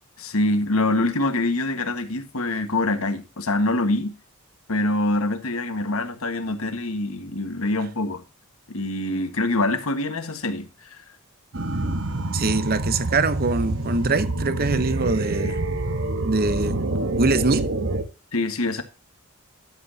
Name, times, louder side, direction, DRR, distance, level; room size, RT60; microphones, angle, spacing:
voice 1, 0.2-4.1 4.7-8.2 8.7-11.0 15.4-15.5 18.3-18.8, left 2 dB, 70° left, 1.6 m, -25 dB
sound 1, 11.5-18.0, right 2 dB, 60° right, 1.3 m, -26 dB
voice 2, 12.3-15.6 16.2-16.8 17.2-17.7, right 3 dB, 40° right, 0.9 m, -23 dB
12.5 x 7.8 x 2.8 m
head